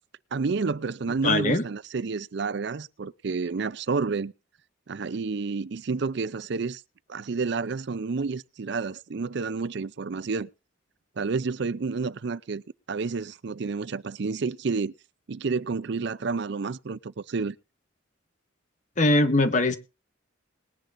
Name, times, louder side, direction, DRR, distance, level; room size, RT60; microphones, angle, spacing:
voice 1, 0.3-4.3 4.9-6.8 7.1-10.5 11.2-12.6 12.9-14.9 15.3-17.6, right 4 dB, 60° right, 0.5 m, -30 dB
voice 2, 1.2-1.6 19.0-19.8, left 2 dB, 40° left, 1.2 m, -21 dB
20.5 x 10.5 x 2.6 m
head